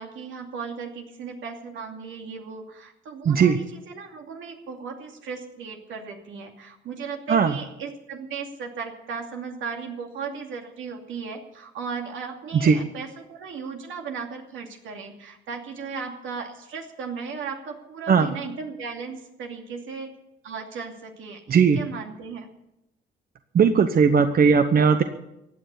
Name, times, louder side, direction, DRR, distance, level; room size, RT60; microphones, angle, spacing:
voice 1, 0.0-20.1 20.4-22.5, right 5 dB, 80° right, 2 dB, 2.6 m, -36 dB
voice 2, 3.2-3.6 7.3-7.6 12.5-12.8 18.1-18.3 21.5-21.8 23.5-25.0, right 6 dB, 50° right, 8 dB, 1.0 m, -18 dB
15.5 x 9.3 x 8.4 m, 0.89 s
cardioid pair, 90°, 20 cm